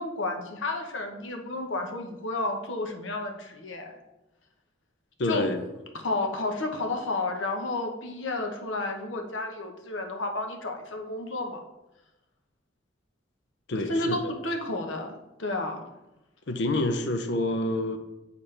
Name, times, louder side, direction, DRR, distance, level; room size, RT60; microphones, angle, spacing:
voice 1, 0.0-3.9 5.2-5.5 6.0-11.6 13.8-15.1 15.4-15.9, left 2 dB, 85° left, 3 dB, 1.0 m, -31 dB
voice 2, 5.2-5.6 13.7-14.3 16.5-18.0, left 1 dB, 65° left, 7 dB, 0.6 m, -27 dB
8.5 x 4.1 x 3.3 m, 0.96 s
head